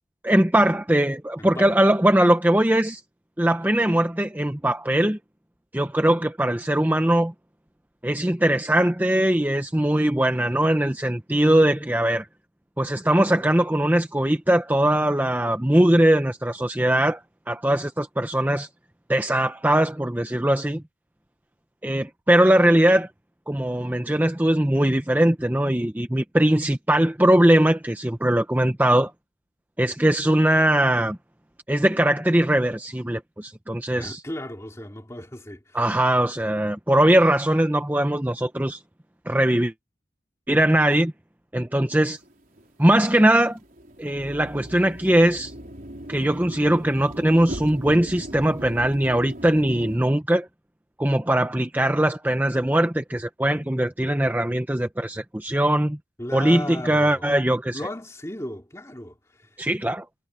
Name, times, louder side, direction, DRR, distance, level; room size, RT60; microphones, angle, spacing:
voice 1, 0.2-3.0 3.4-5.2 5.7-7.3 8.0-12.3 12.8-17.2 17.5-18.7 19.1-20.8 21.8-23.1 23.5-29.1 29.8-31.2 31.7-34.2 35.7-38.8 39.3-39.7 40.5-41.1 41.5-42.2 42.8-43.6 44.0-45.5 46.1-50.5 51.0-56.0 56.3-57.8 59.6-60.0, right 1 dB, 10° right, 0.7 m, -21 dB
voice 2, 1.4-1.7 33.9-35.8 56.2-57.4 57.7-59.5, left 1 dB, 15° left, 2.6 m, -36 dB
sound 1, 42.0-50.0, equal, 50° right, 4.7 m, -39 dB
head